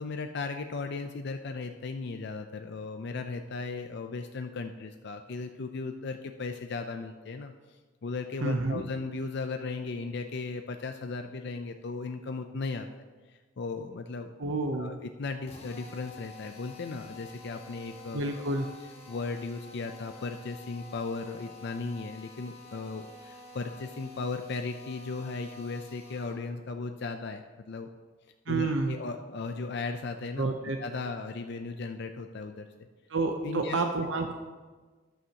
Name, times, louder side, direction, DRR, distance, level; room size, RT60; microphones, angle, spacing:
voice 1, 0.0-12.9 13.3-14.3 14.7-18.4 19.1-27.9 28.5-30.5 30.8-32.9 33.4-33.8, left 4 dB, 60° left, 6 dB, 0.5 m, -36 dB
voice 2, 8.4-8.8 14.4-14.9 18.1-18.7 28.5-28.9 30.4-30.8 33.1-34.3, right 3 dB, 80° right, 4 dB, 0.7 m, -29 dB
Drill, 15.4-26.5, left 3 dB, 35° left, 1.5 m, -49 dB
14.0 x 10.0 x 2.9 m, 1.4 s
head